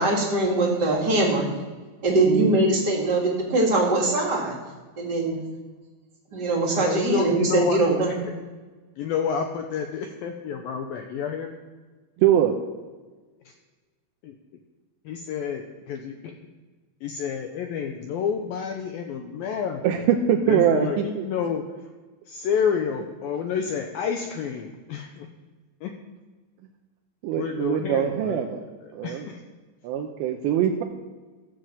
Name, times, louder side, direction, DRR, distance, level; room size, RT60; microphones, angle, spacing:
voice 1, 0.0-1.4 2.0-4.6 5.0-5.4 6.3-8.2, right 2 dB, 35° right, -2 dB, 2.0 m, -22 dB
voice 2, 2.3-2.6 12.2-12.6 19.8-21.3 27.2-28.6 28.9-29.3 29.8-30.8, right 9 dB, 80° right, 2 dB, 3.0 m, -23 dB
voice 3, 6.8-7.8 8.2-8.3 9.0-11.6 14.2-14.4 15.1-16.3 17.0-20.1 20.5-21.6 22.3-25.3 25.8-25.9 27.3-28.4 28.8-29.4, left 7 dB, 80° left, 4 dB, 2.1 m, -29 dB
15.5 x 6.0 x 7.5 m, 1.3 s
omnidirectional pair, 5.1 m